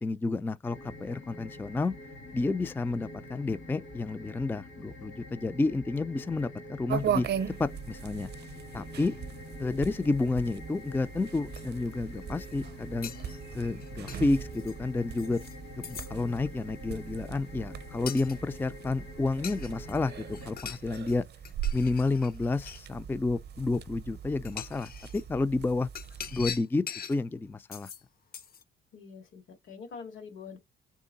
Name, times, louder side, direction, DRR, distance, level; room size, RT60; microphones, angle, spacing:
voice 1, 0.0-1.9 2.3-7.3 7.6-8.3 8.7-9.1 9.6-13.1 13.5-15.4 15.8-20.1 20.4-21.2 21.7-25.9 26.3-27.9, left 3 dB, 10° left, 0.3 m, -30 dB
sound 1, 0.6-20.6, left 1 dB, 65° left, 1.8 m, -46 dB
sound 2, 6.9-26.6, right 9 dB, 55° right, 0.6 m, -39 dB
sound 3, 11.6-11.7 12.2-12.5 13.0-14.7 15.2-15.6 15.8-16.1 18.1-18.4 19.4-20.0 20.3-21.2 21.5-22.9 23.8-23.9 24.5-25.2 26.0-27.2 27.7-28.0 28.3-28.6, left 7 dB, 50° left, 0.7 m, -42 dB
voice 2, 28.9-30.6, left 5 dB, 80° left, 2.2 m, -45 dB
3.7 x 3.6 x 3.9 m
cardioid pair, 90°, 20 cm